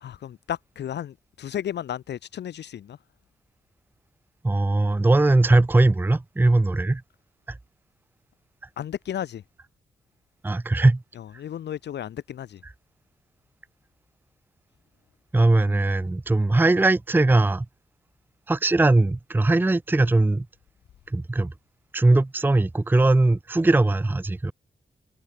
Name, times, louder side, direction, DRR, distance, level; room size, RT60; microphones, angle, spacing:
voice 1, 0.0-3.0 8.8-9.4 11.4-12.6, left 10 dB, 80° left, 0.6 m, -33 dB
voice 2, 4.4-7.0 7.5-7.6 10.4-11.0 12.6-12.7 15.3-17.7 18.5-20.5 21.1-21.5 21.9-24.5, right 2 dB, 10° right, 0.6 m, -20 dB
wide cardioid pair, 170°, 18 cm